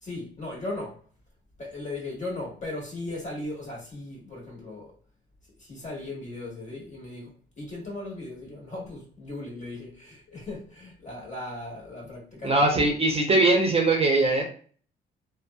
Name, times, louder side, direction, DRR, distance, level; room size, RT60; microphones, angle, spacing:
voice 1, 0.0-1.0 1.6-4.9 5.6-7.3 7.6-12.8, left 2 dB, 35° left, 1.4 m, -37 dB
voice 2, 12.4-14.4, right 2 dB, 30° right, 0.7 m, -21 dB
2.6 x 2.1 x 2.3 m
cardioid pair, 90°, 20 cm